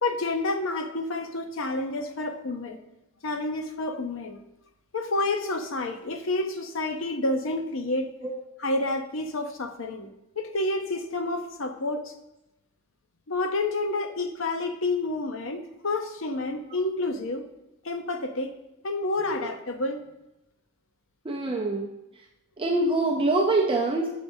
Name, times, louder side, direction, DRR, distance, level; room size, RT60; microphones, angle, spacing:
voice 1, 0.0-2.8 3.2-4.4 4.9-8.1 8.6-10.1 10.4-12.1 13.3-17.4 17.8-18.6 18.8-20.0, left 2 dB, 65° left, 7 dB, 0.7 m, -29 dB
voice 2, 21.2-21.9 22.6-24.1, right 2 dB, 25° right, 0 dB, 0.6 m, -24 dB
7.9 x 6.6 x 2.7 m, 0.90 s
head